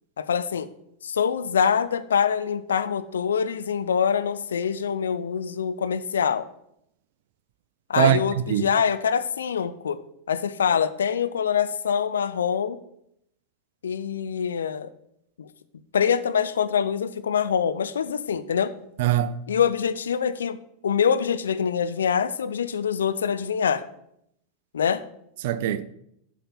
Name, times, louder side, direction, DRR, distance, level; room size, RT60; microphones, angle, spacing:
voice 1, 0.2-0.7 1.0-6.5 7.9-10.0 10.3-12.8 13.8-14.9 15.4-15.5 15.9-18.7 19.5-20.6 20.8-23.8 24.7-25.0, left 7 dB, 65° left, 0.5 m, -24 dB
voice 2, 8.0-8.7 19.0-19.4 25.4-25.8, right 11 dB, 50° right, 0.5 m, -22 dB
8.2 x 5.7 x 4.3 m
figure-of-eight pair, 90°, 0 cm